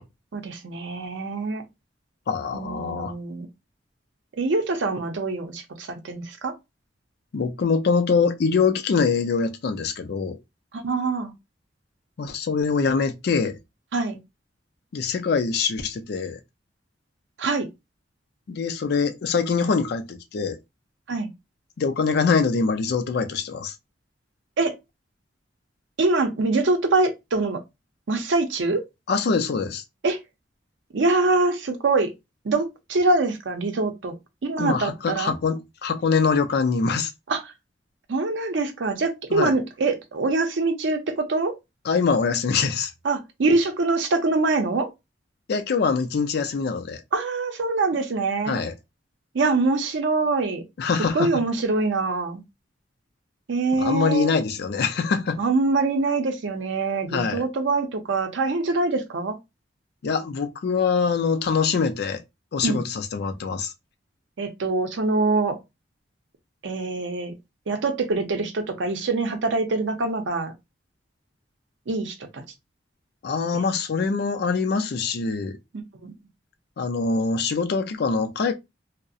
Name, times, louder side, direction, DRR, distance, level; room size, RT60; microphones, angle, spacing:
voice 1, 0.3-1.6 2.5-3.5 4.4-6.6 10.7-11.3 13.9-14.2 17.4-17.7 21.1-21.3 24.6-24.7 26.0-27.6 28.1-28.9 30.0-30.2 30.9-32.1 32.4-34.1 34.4-35.3 37.3-37.5 38.1-41.5 43.0-44.9 47.1-48.6 49.3-50.6 51.1-52.4 53.5-54.3 55.4-59.4 62.6-62.8 64.4-65.6 66.6-67.3 67.7-70.5 71.9-72.4 76.0-76.1, right 3 dB, 90° right, 0.6 m, -24 dB
voice 2, 2.3-3.1 7.3-10.4 12.2-13.6 14.9-16.4 18.5-20.6 21.8-23.7 29.1-29.8 34.6-37.1 39.3-39.5 41.8-42.9 45.5-47.0 48.5-48.7 50.8-51.3 53.7-55.4 57.1-57.4 60.0-62.2 62.5-63.7 73.2-75.6 76.8-78.5, left 5 dB, 60° left, 0.4 m, -24 dB
2.3 x 2.0 x 2.6 m
head